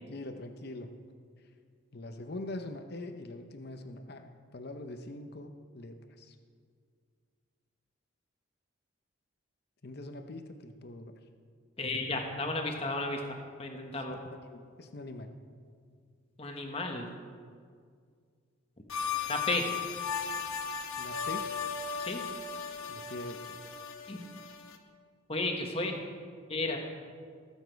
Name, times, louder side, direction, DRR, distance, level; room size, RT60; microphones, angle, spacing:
voice 1, 0.0-1.0 1.9-6.3 9.8-11.2 14.1-15.4 21.0-21.5 22.9-23.6, left 2 dB, 50° left, 7 dB, 0.8 m, -43 dB
voice 2, 11.8-13.2 13.6-14.2 16.4-17.1 19.3-19.6 22.0-22.2 24.1-24.2 25.3-26.0 26.5-26.8, left 2 dB, 30° left, 3 dB, 1.2 m, -33 dB
sound 1, 18.9-24.8, left 6 dB, 90° left, 1.1 m, -36 dB
19.0 x 7.4 x 4.6 m, 2.1 s
head